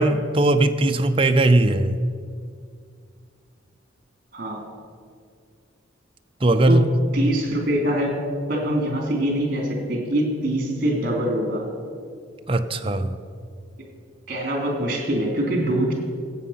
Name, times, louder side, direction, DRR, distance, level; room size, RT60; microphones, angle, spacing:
voice 1, 0.0-2.0 6.4-6.8 12.5-13.1, right 2 dB, 30° right, 7 dB, 0.6 m, -19 dB
voice 2, 4.3-4.6 6.7-6.8 7.1-8.1 8.5-11.7 14.3-15.9, right 1 dB, 45° right, 1 dB, 3.0 m, -24 dB
15.5 x 8.5 x 5.8 m, 2.2 s
head